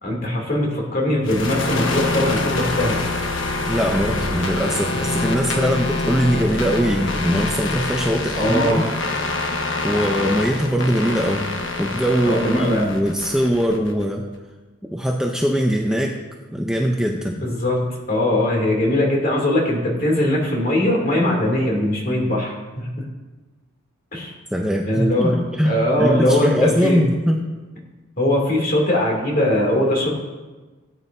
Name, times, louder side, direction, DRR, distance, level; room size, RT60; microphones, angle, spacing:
voice 1, 0.0-3.0 5.5-5.8 8.3-8.8 12.3-12.8 17.4-23.1 24.1-24.3 24.8-25.3 25.6-27.0 28.2-30.1, left 1 dB, 40° left, -2 dB, 2.8 m, -21 dB
sound 1, 1.2-14.0, left 2 dB, 65° left, 1.2 m, -25 dB
voice 2, 3.7-8.9 9.8-11.5 11.8-14.2 14.9-16.2 16.5-17.5 24.5-27.5, equal, 5° right, 0 dB, 0.6 m, -21 dB
17.5 x 9.1 x 2.7 m, 1.2 s
head